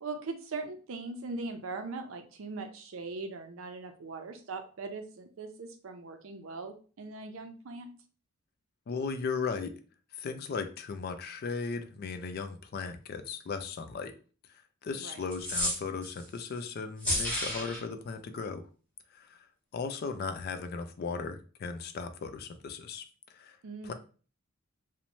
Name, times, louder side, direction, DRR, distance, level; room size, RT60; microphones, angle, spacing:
voice 1, 0.0-7.9 15.0-15.2 23.6-23.9, right 3 dB, 70° right, 6 dB, 0.5 m, -40 dB
voice 2, 8.9-9.8 10.1-14.1 14.8-18.6 19.1-19.5 19.7-23.6 23.8-23.9, left 5 dB, 50° left, 8 dB, 0.3 m, -37 dB
sound 1, 15.3-16.2 17.0-17.8, left 1 dB, 5° left, 1.0 m, -31 dB
3.0 x 2.1 x 2.6 m, 0.38 s
head